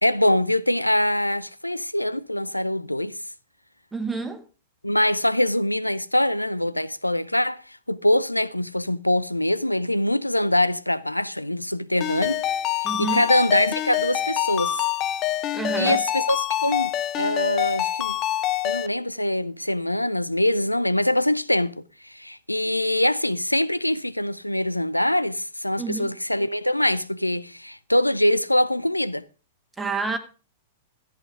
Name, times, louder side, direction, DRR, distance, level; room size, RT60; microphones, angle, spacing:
voice 1, 0.0-3.2 4.8-7.6 7.9-12.4 12.7-14.9 15.8-16.9 17.2-18.2 18.6-29.2, left 1 dB, 90° left, 0.5 m, -23 dB
voice 2, 3.9-4.4 12.8-13.2 15.5-16.0 25.8-26.1 29.8-30.2, right 4 dB, 10° right, 1.8 m, -28 dB
Ringtone, 12.0-18.9, left 13 dB, 30° left, 0.5 m, -26 dB
14.0 x 8.2 x 5.0 m
figure-of-eight pair, 100°, 0 cm